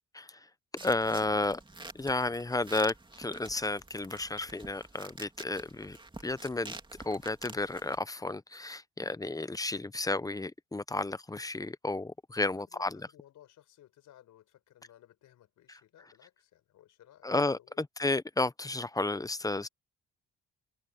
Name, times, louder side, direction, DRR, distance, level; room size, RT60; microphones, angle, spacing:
voice 1, 0.1-0.5 0.8-1.6 1.9-6.0 6.2-6.8 7.0-13.1 15.7-15.8 17.2-19.7, left 2 dB, 10° left, 0.6 m, -32 dB
sound 1, 0.8-8.0, right 2 dB, 15° right, 2.7 m, -48 dB
voice 2, 12.4-17.8, left 12 dB, 80° left, 5.7 m, -59 dB
cardioid pair, 90°, 30 cm